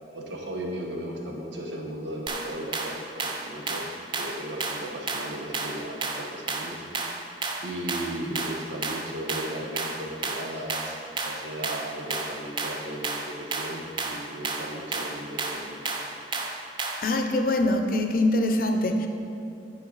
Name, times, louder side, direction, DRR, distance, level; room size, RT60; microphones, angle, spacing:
voice 1, 0.1-6.9 7.6-11.0 11.2-15.9, right 1 dB, 90° right, 0 dB, 1.1 m, -36 dB
sound 1, 2.3-17.2, right 3 dB, 25° right, 0.5 m, -32 dB
voice 2, 17.0-19.1, left 1 dB, 50° left, 5 dB, 0.6 m, -23 dB
10.0 x 5.1 x 3.9 m, 2.7 s
head